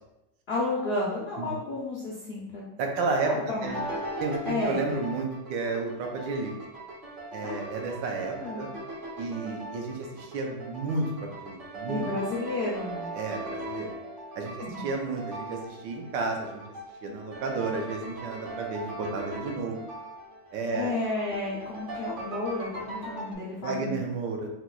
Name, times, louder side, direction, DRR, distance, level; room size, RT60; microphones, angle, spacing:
voice 1, 0.5-2.7 3.0-3.8 4.4-4.9 7.4-8.0 8.3-8.7 11.9-13.1 14.6-14.9 20.7-24.0, left 2 dB, 75° left, -4 dB, 0.5 m, -32 dB
voice 2, 2.8-3.3 3.6-3.8 4.2-6.5 7.3-8.7 9.2-11.1 11.4-12.0 13.1-13.9 14.3-16.6 17.0-19.8 20.5-20.9 23.6-24.5, right 3 dB, 80° right, 1 dB, 1.4 m, -32 dB
sound 1, 3.6-23.3, right 1 dB, 45° right, 0.6 m, -39 dB
4.5 x 2.2 x 3.9 m, 0.90 s
omnidirectional pair, 2.0 m